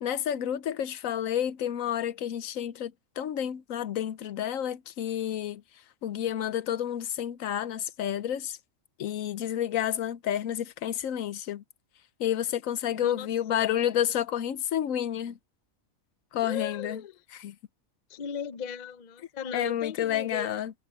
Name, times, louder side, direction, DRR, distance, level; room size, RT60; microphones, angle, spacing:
voice 1, 0.0-5.6 6.0-8.6 9.0-11.6 12.2-15.4 16.3-17.0 17.4-17.5 19.5-20.7, left 10 dB, 75° left, 1.1 m, -30 dB
voice 2, 13.0-13.8 16.4-17.2 18.1-20.5, left 7 dB, 40° left, 0.6 m, -37 dB
omnidirectional pair, 1.4 m